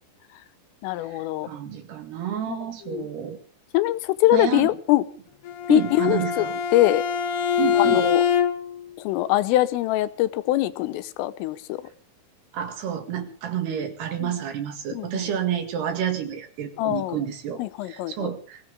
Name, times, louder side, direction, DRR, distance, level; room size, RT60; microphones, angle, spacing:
voice 1, 0.8-1.5 2.5-2.6 2.9-3.1 3.7-5.1 5.7-6.5 6.7-7.0 7.8-8.2 9.1-11.9 14.2-14.3 14.9-15.2 16.8-17.2 17.6-18.1, left 16 dB, 85° left, 3.5 m, -23 dB
voice 2, 1.4-3.4 4.3-4.7 5.7-6.6 7.6-8.1 12.5-18.7, right 9 dB, 60° right, 3.7 m, -29 dB
Bowed string instrument, 5.4-8.8, left 8 dB, 60° left, 2.2 m, -24 dB
23.0 x 16.5 x 3.5 m
omnidirectional pair, 5.8 m